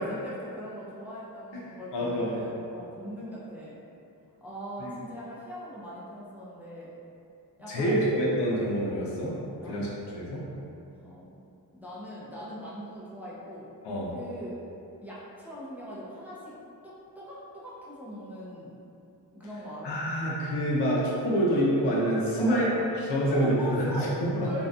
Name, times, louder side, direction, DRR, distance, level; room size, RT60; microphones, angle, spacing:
voice 1, 0.0-3.8 4.4-6.9 7.6-8.0 9.6-9.8 11.0-11.4 11.7-13.7 14.1-14.6 15.0-16.5 16.8-18.7 19.3-19.9 22.4-22.8 23.3-24.2 24.4-24.7, equal, 5° right, -8 dB, 0.4 m, -40 dB
voice 2, 1.9-2.4 4.8-4.9 7.7-9.3 9.6-10.4 13.8-14.1 19.8-22.7 23.1-24.5, equal, 80° left, -5 dB, 0.7 m, -27 dB
2.6 x 2.2 x 2.4 m, 2.7 s
cardioid pair, 90°, 41 cm